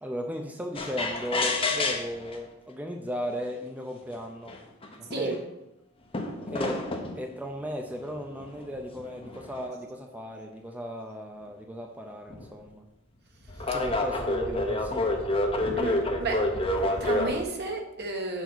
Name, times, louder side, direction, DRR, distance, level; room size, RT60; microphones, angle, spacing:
voice 1, 0.0-4.6 5.0-5.4 6.5-6.8 7.1-12.8 13.7-15.2, equal, 10° right, 2 dB, 0.6 m, -36 dB
sound 1, 0.8-2.4 3.3-3.4 4.1-4.2 4.5-5.4 6.1-7.2 8.1-9.7 12.3-12.5 13.5-17.4, left 2 dB, 25° left, 1.0 m, -28 dB
voice 2, 13.5-13.8 15.7-16.5 16.9-18.4, right 2 dB, 55° right, 2 dB, 1.4 m, -32 dB
7.1 x 5.1 x 6.1 m, 0.91 s
head